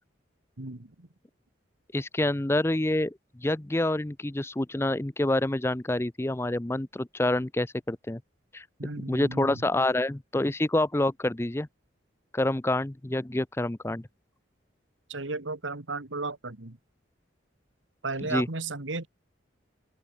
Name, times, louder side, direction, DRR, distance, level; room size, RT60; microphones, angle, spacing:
voice 1, 0.6-1.1 8.8-9.6 15.1-16.8 18.0-19.1, right 3 dB, 90° right, 2.1 m, -34 dB
voice 2, 1.9-8.2 8.5-8.6 9.1-11.7 12.3-14.1 18.3-18.5, left 1 dB, 15° left, 0.5 m, -27 dB
open air
head